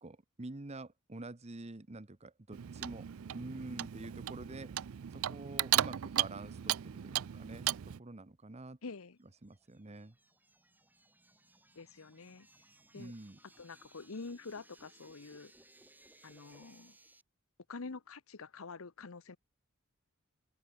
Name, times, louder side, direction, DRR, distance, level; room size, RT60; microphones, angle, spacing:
voice 1, 0.0-4.7 5.1-8.8 9.4-10.2 12.9-13.4, right 2 dB, 30° right, 1.0 m, -47 dB
Clock, 2.5-8.0, right 13 dB, 85° right, 0.4 m, -36 dB
voice 2, 8.8-9.2 11.8-12.5 12.9-13.1 13.6-15.5 16.2-17.0 17.7-19.4, left 4 dB, 85° left, 0.9 m, -47 dB
sound 1, 9.2-17.2, right 2 dB, 10° right, 3.0 m, -63 dB
open air
head